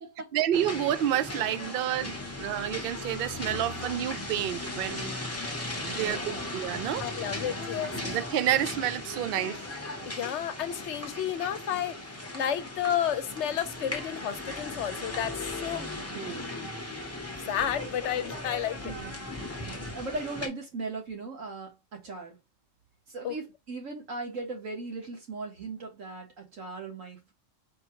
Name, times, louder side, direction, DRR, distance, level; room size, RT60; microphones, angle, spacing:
voice 1, 0.3-5.2 5.8-6.2 6.5-7.0 7.9-9.6 16.1-16.4, right 11 dB, 60° right, 0.6 m, -29 dB
sound 1, 0.5-20.5, left 2 dB, 15° left, 0.8 m, -37 dB
voice 2, 5.9-6.5 18.8-22.4 23.1-27.3, right 3 dB, 90° right, 1.9 m, -38 dB
voice 3, 7.0-7.9 10.1-12.0 12.3-15.9 17.5-18.9 23.2-23.3, left 9 dB, 70° left, 0.9 m, -31 dB
4.4 x 2.2 x 4.5 m
omnidirectional pair, 1.3 m